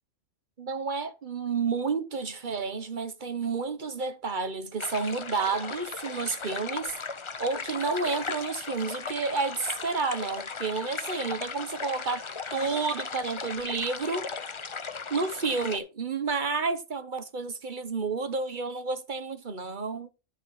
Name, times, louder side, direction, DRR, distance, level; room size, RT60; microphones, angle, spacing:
voice 1, 0.6-6.9 7.4-12.2 12.5-14.3 15.1-20.1, right 4 dB, 45° right, 1.0 m, -30 dB
sound 1, 4.8-15.8, left 5 dB, 35° left, 0.6 m, -37 dB
12.0 x 4.7 x 4.6 m
omnidirectional pair, 1.3 m